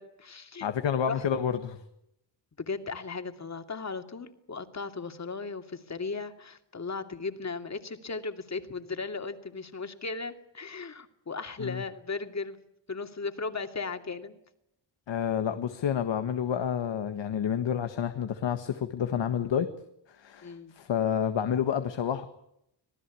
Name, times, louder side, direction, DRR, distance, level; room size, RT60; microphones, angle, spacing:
voice 1, 0.0-0.7 1.1-1.3 2.6-12.6 12.9-14.4 20.4-20.7, left 4 dB, 40° left, 7 dB, 2.7 m, -36 dB
voice 2, 0.6-1.8 11.6-11.8 15.1-19.7 20.1-22.3, left 8 dB, 85° left, 8 dB, 1.7 m, -29 dB
26.5 x 18.5 x 8.5 m, 0.81 s
wide cardioid pair, 110°, 43 cm